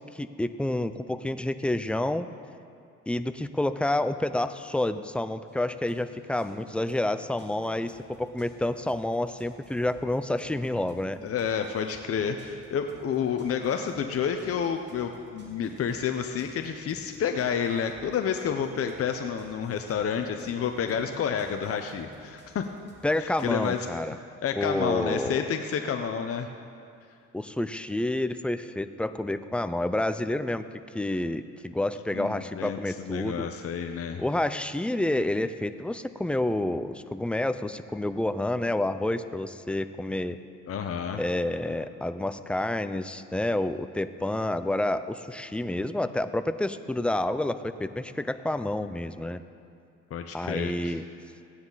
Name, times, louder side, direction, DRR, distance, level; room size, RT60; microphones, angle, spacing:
voice 1, 0.0-2.3 3.1-11.2 23.0-24.2 24.6-25.4 27.3-30.6 30.9-33.5 34.2-40.4 41.2-49.4 50.3-51.0, left 1 dB, 5° left, 11 dB, 0.4 m, -29 dB
sound 1, 5.5-23.8, right 1 dB, 35° right, 2.3 m, -53 dB
voice 2, 11.2-22.7 23.2-23.9 24.4-26.5 32.1-32.8 33.0-34.2 40.7-41.2 50.1-51.0, left 7 dB, 50° left, 6 dB, 0.7 m, -30 dB
16.0 x 9.6 x 4.0 m, 2.5 s
cardioid pair, 90°, 30 cm